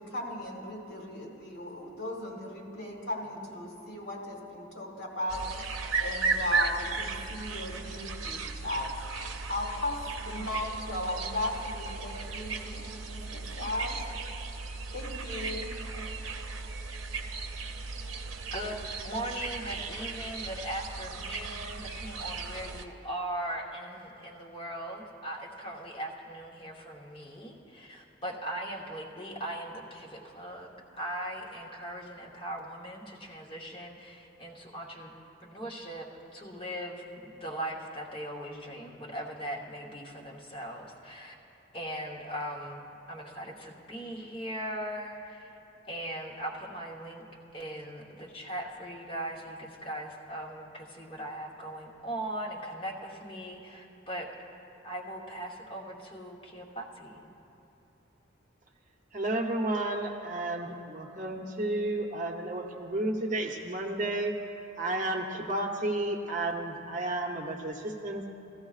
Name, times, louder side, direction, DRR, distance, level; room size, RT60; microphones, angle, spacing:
voice 1, 0.0-8.9 9.2-10.0 10.2-14.0 14.9-15.8, left 1 dB, 75° left, -1 dB, 1.9 m, -36 dB
sound 1, 5.3-22.8, right 4 dB, 80° right, 0.6 m, -36 dB
voice 2, 18.5-35.1 35.4-41.3 41.7-42.8 43.1-45.5 45.9-47.2 47.5-54.3 54.8-57.3, right 1 dB, 25° left, -3 dB, 1.1 m, -39 dB
voice 3, 59.1-64.4 64.8-68.2, right 2 dB, 40° right, 1 dB, 0.8 m, -32 dB
15.5 x 14.5 x 2.4 m, 2.9 s
head